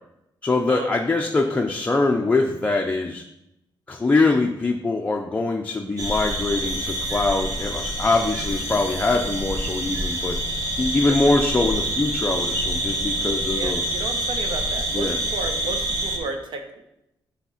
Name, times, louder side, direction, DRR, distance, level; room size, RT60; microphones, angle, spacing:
voice 1, 0.4-3.2 3.9-10.4 10.8-13.8 14.9-15.2, left 3 dB, 20° left, 1 dB, 0.6 m, -23 dB
sound 1, 6.0-16.2, right 1 dB, 40° right, 1.8 m, -27 dB
voice 2, 13.5-16.8, right 3 dB, 75° right, 4 dB, 1.2 m, -33 dB
9.7 x 3.5 x 5.7 m, 0.85 s
wide cardioid pair, 150°, 8 cm